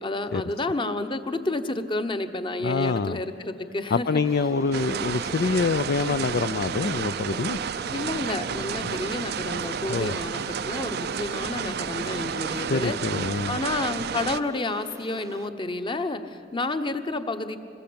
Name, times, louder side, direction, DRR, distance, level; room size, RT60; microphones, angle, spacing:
voice 1, 0.0-4.1 7.9-13.0 13.5-17.6, left 2 dB, 25° left, 9 dB, 1.1 m, -30 dB
voice 2, 2.6-3.2 3.9-7.6 8.8-8.9 9.9-10.2 12.7-13.6, left 4 dB, 55° left, 11 dB, 0.5 m, -26 dB
Water / Boiling, 4.2-15.5, right 2 dB, 15° right, 0.7 m, -44 dB
sound 1, 4.7-14.4, right 7 dB, 60° right, 0.5 m, -31 dB
25.5 x 21.0 x 8.7 m, 2.9 s
head